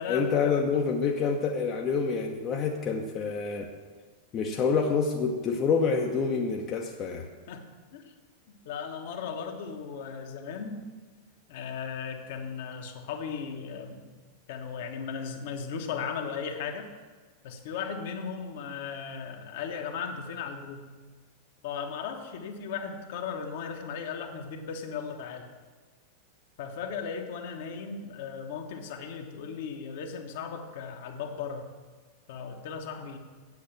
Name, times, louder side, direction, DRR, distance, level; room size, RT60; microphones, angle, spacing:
voice 1, 0.1-3.7 4.3-7.3, left 5 dB, 30° left, 1 dB, 0.9 m, -27 dB
voice 2, 7.5-8.1 8.6-10.8 11.5-14.1 14.5-16.9 17.4-20.9 21.6-25.5 26.6-31.7 32.3-33.2, left 6 dB, 55° left, 4 dB, 1.3 m, -36 dB
8.6 x 8.0 x 7.3 m, 1.4 s
figure-of-eight pair, 90°, 0 cm